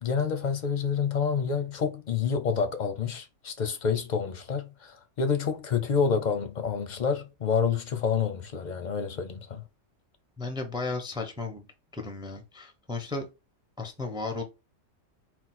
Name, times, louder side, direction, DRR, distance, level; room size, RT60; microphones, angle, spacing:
voice 1, 0.0-9.6, left 6 dB, 50° left, 0.6 m, -28 dB
voice 2, 10.4-11.7 11.9-13.3 13.8-14.4, left 3 dB, 5° right, 0.4 m, -34 dB
4.3 x 2.1 x 4.1 m
omnidirectional pair, 1.3 m